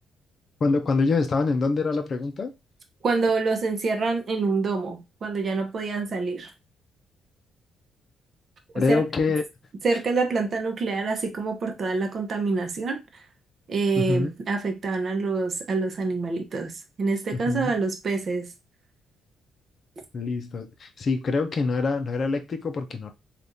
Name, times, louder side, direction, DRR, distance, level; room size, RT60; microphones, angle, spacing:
voice 1, 0.6-2.5 8.7-9.4 14.0-14.3 17.3-17.8 20.1-23.1, left 3 dB, 45° left, 0.6 m, -25 dB
voice 2, 3.0-6.5 8.9-9.0 9.8-13.0 13.7-18.5, right 3 dB, 50° right, 0.8 m, -26 dB
3.4 x 2.5 x 2.7 m
cardioid pair, 90°, 0 cm